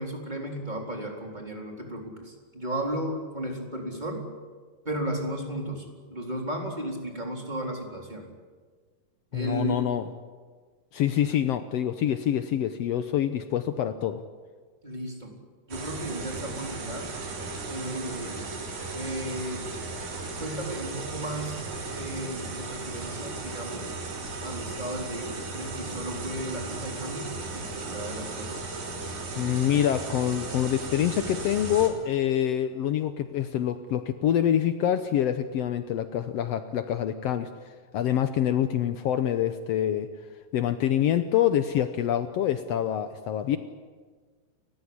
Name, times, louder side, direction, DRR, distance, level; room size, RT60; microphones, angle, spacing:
voice 1, 0.0-4.3 4.8-8.3 9.3-9.8 14.8-15.4 15.7-17.2 17.7-18.5 18.9-19.7 20.4-21.6 21.9-23.9 24.4-28.6, right 1 dB, 10° right, 1 dB, 3.9 m, -34 dB
voice 2, 9.3-10.0 10.9-14.2 29.4-37.5 37.9-40.1 40.5-43.6, left 10 dB, 85° left, 9 dB, 1.4 m, -26 dB
sound 1, 15.7-31.9, right 3 dB, 75° right, 5.3 m, -36 dB
30.0 x 15.0 x 9.7 m, 1.5 s
omnidirectional pair, 4.0 m